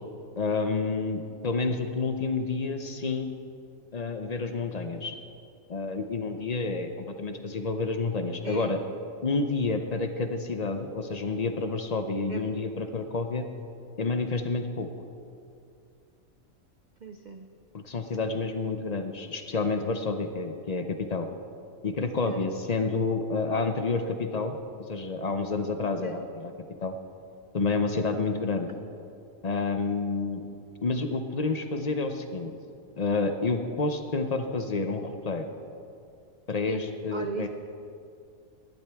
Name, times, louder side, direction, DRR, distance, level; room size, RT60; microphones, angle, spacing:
voice 1, 0.4-3.3 3.9-5.1 5.7-8.8 9.2-13.5 14.0-14.9 17.7-21.3 21.8-24.6 24.9-26.5 26.8-27.0 27.5-28.7 29.4-30.5 30.8-32.5 33.0-35.4 36.5-37.5, left 3 dB, 45° left, 7 dB, 0.5 m, -29 dB
voice 2, 17.0-17.5 22.3-22.4 26.0-26.2 36.7-36.8 37.1-37.5, right 5 dB, 80° right, 6 dB, 0.4 m, -37 dB
18.5 x 12.0 x 3.5 m, 2.5 s
omnidirectional pair, 1.5 m